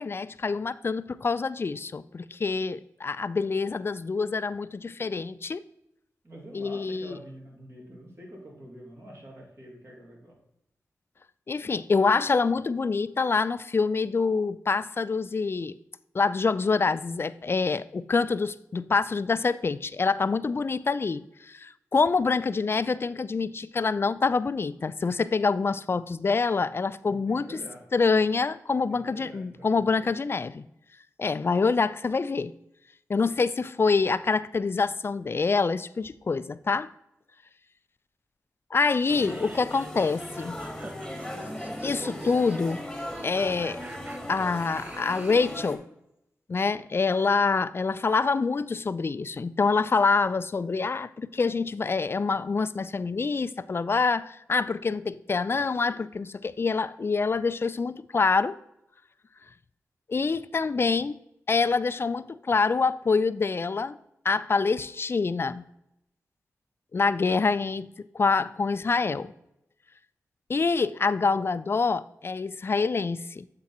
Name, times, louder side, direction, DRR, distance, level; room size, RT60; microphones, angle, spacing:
voice 1, 0.0-5.6 6.5-7.2 11.5-15.8 16.1-27.6 27.9-30.7 31.2-32.5 33.1-36.9 38.7-40.6 41.8-42.8 43.2-43.8 44.3-45.8 46.5-58.5 60.1-61.2 61.5-64.0 64.2-65.7 66.9-69.3 70.5-73.5, left 4 dB, 40° left, 15 dB, 0.3 m, -26 dB
voice 2, 6.2-10.4 27.0-27.8 28.9-30.1, equal, 45° right, -2 dB, 2.7 m, -46 dB
sound 1, 39.0-45.5, right 2 dB, 25° right, 0.7 m, -46 dB
sound 2, 39.1-45.8, equal, 5° left, 1.5 m, -38 dB
7.3 x 3.8 x 4.2 m, 0.82 s
cardioid pair, 45°, 6 cm